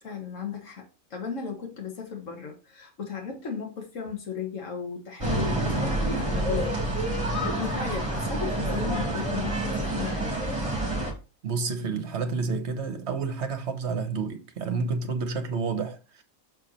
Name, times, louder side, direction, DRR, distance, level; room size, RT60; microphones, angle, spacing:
voice 1, 0.0-10.5, left 6 dB, 60° left, 2.0 m, -36 dB
sound 1, 5.2-11.1, right 1 dB, 20° right, 2.3 m, -28 dB
voice 2, 11.4-16.2, right 4 dB, 55° right, 1.2 m, -30 dB
6.7 x 4.7 x 4.2 m
omnidirectional pair, 1.5 m